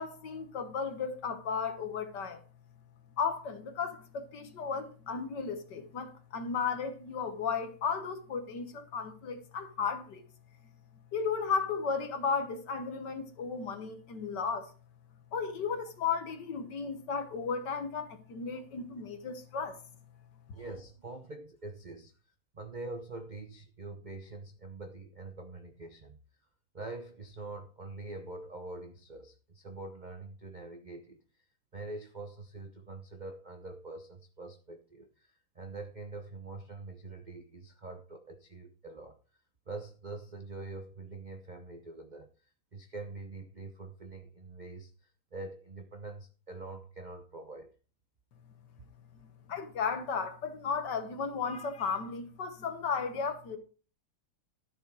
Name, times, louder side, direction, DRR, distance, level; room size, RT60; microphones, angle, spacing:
voice 1, 0.0-2.4 3.2-10.2 11.1-14.7 15.3-19.8 49.2-53.6, left 5 dB, 55° left, 1.8 m, -34 dB
voice 2, 20.5-22.1 22.5-26.2 26.7-31.2 31.7-39.2 39.7-42.3 42.7-44.9 45.3-47.7, right 2 dB, 75° right, 0.4 m, -44 dB
12.5 x 7.1 x 4.7 m
omnidirectional pair, 2.4 m